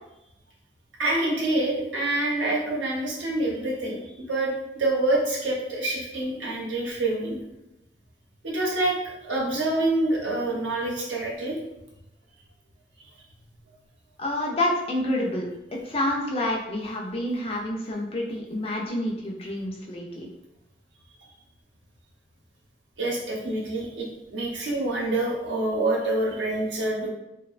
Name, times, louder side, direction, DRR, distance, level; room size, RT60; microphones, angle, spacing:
voice 1, 1.0-7.4 8.4-8.9 9.2-11.6 23.0-27.1, right 2 dB, 85° right, -3 dB, 0.7 m, -26 dB
voice 2, 14.2-15.5 15.9-20.3, left 1 dB, 30° left, -1 dB, 0.3 m, -28 dB
2.7 x 2.1 x 2.4 m, 0.91 s
head